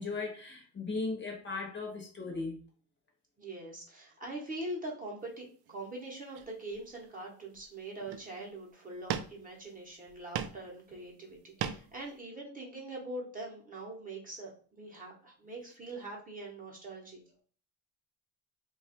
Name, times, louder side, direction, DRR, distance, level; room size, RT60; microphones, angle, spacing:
voice 1, 0.0-2.6, left 3 dB, 30° left, 0.7 m, -37 dB
voice 2, 3.4-17.2, right 2 dB, 20° right, 0.8 m, -43 dB
sound 1, 5.7-5.8 6.3-7.1 7.5-7.7 8.0-8.5 9.1-9.7 10.1-10.7 11.0-12.0, right 9 dB, 80° right, 0.5 m, -38 dB
2.9 x 2.3 x 4.2 m
cardioid pair, 175°, 38 cm